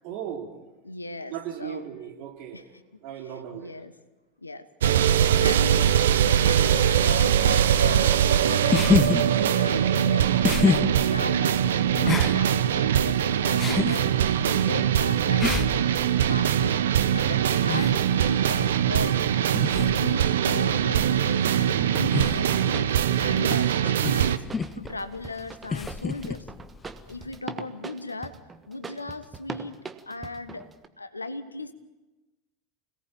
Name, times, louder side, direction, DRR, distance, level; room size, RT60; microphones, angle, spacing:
voice 1, 0.0-0.5 1.3-2.6 3.0-3.7, right 9 dB, 50° right, 3 dB, 3.2 m, -36 dB
voice 2, 0.8-1.9 2.5-2.6 2.9-3.9 4.4-4.7 5.4-10.3 10.6-14.1 14.4-15.7 16.2-16.8 17.1-19.2 19.7-22.9 23.2-24.4 24.8-26.5 27.1-28.4 28.7-29.8 30.1-30.7 31.0-31.7, left 3 dB, 85° left, 12 dB, 1.2 m, -36 dB
sound 1, 4.8-24.4, right 10 dB, 65° right, 0.9 m, -22 dB
sound 2, 7.7-27.4, left 6 dB, 20° left, 0.8 m, -31 dB
sound 3, 21.8-30.9, right 4 dB, 20° right, 1.4 m, -40 dB
25.5 x 18.5 x 9.0 m, 1.1 s
figure-of-eight pair, 80°, 0 cm